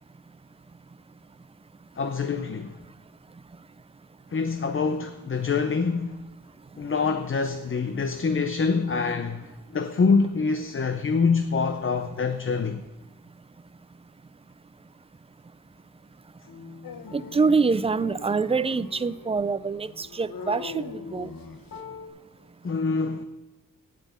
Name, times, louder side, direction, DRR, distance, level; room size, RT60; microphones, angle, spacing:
voice 1, 2.0-2.8 4.3-6.2 6.8-12.8 22.6-23.2, left 4 dB, 40° left, 0.6 m, -25 dB
sound 1, 16.5-22.1, left 4 dB, 60° left, 2.0 m, -46 dB
Dog, 16.8-21.9, left 6 dB, 85° left, 0.8 m, -43 dB
voice 2, 17.1-21.3, right 4 dB, 20° right, 0.3 m, -25 dB
9.4 x 8.9 x 8.1 m
wide cardioid pair, 120°, 34 cm